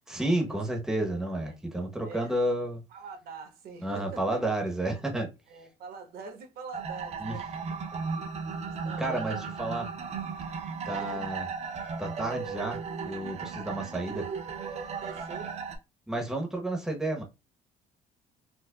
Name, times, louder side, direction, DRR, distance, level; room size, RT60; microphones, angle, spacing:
voice 1, 0.1-2.8 3.8-5.3 7.2-7.4 9.0-9.9 10.8-11.5 12.0-12.8 13.0-14.3 16.1-17.2, right 1 dB, 5° right, 0.9 m, -31 dB
voice 2, 2.0-2.3 2.9-4.4 5.5-7.5 7.9-8.0 8.6-9.2 10.8-11.3 15.0-15.5, right 5 dB, 65° right, 1.2 m, -44 dB
sound 1, 6.7-15.8, right 5 dB, 40° right, 0.8 m, -36 dB
4.5 x 2.2 x 2.3 m
cardioid pair, 110°, 17 cm